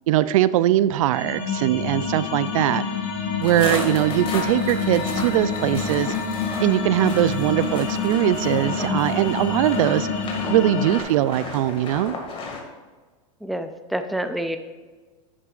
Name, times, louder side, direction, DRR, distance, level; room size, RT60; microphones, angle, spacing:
voice 1, 0.1-2.8 3.4-6.2 6.6-10.1 10.5-12.1, right 13 dB, 70° right, 16 dB, 0.4 m, -21 dB
sound 1, 1.1-11.0, left 4 dB, 55° left, 2.7 m, -27 dB
sound 2, 3.4-12.6, left 3 dB, 30° left, 2.0 m, -34 dB
voice 2, 13.4-14.6, right 1 dB, ahead, 8 dB, 0.5 m, -28 dB
10.5 x 8.7 x 2.5 m, 1.4 s
supercardioid pair, 125°, 18 cm